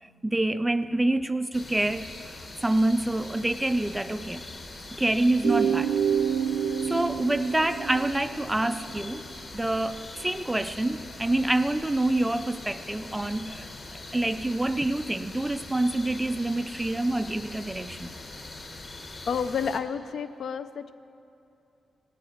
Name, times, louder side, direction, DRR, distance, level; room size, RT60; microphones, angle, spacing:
voice 1, 0.0-2.1 2.6-4.5 5.0-5.9 6.9-9.2 9.5-18.1, right 1 dB, 10° right, 11 dB, 0.3 m, -27 dB
sound 1, 1.5-19.8, left 2 dB, 30° left, 1.1 m, -42 dB
sound 2, 5.4-9.0, right 7 dB, 80° right, 0.6 m, -27 dB
voice 2, 19.3-20.9, left 6 dB, 55° left, 11 dB, 0.5 m, -30 dB
18.0 x 9.7 x 6.5 m, 2.7 s
wide cardioid pair, 170°, 0 cm